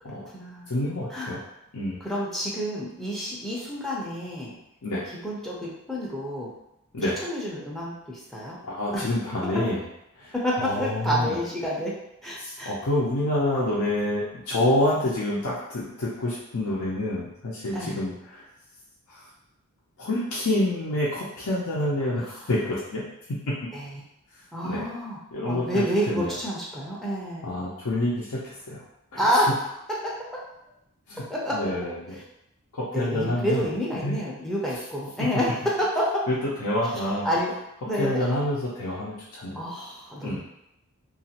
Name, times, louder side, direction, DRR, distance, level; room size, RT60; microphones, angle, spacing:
voice 1, 0.1-0.7 1.1-1.3 2.0-4.6 5.2-6.5 7.2-8.6 8.9-9.1 10.4-12.0 12.2-12.7 17.7-18.0 23.7-23.9 24.5-25.2 25.5-27.5 29.2-29.5 29.9-30.3 31.2-31.6 32.9-35.5 35.8-36.1 37.2-37.5 37.9-38.2 39.5-40.4, equal, ahead, -5 dB, 0.5 m, -29 dB
voice 2, 0.7-1.4 1.7-2.0 4.8-5.0 6.9-7.1 8.7-9.8 10.2-11.4 12.4-18.4 19.1-19.3 20.0-23.0 24.6-24.9 25.3-26.3 27.4-28.8 29.1-29.2 31.1-31.2 31.5-32.2 32.7-33.6 34.0-34.2 35.2-35.3 36.3-37.3 38.0-39.6 40.2-40.4, left 1 dB, 70° left, -6 dB, 0.6 m, -27 dB
2.9 x 2.4 x 2.8 m, 0.83 s
head